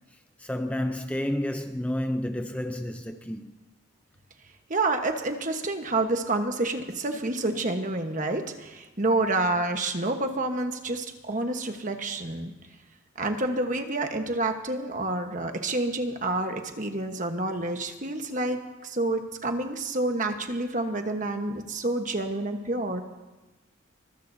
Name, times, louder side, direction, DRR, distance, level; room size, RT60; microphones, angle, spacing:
voice 1, 0.4-3.5, left 1 dB, 5° left, 0.6 m, -30 dB
voice 2, 4.7-12.5 13.2-23.0, right 2 dB, 40° right, 1.2 m, -28 dB
24.0 x 22.0 x 2.8 m
head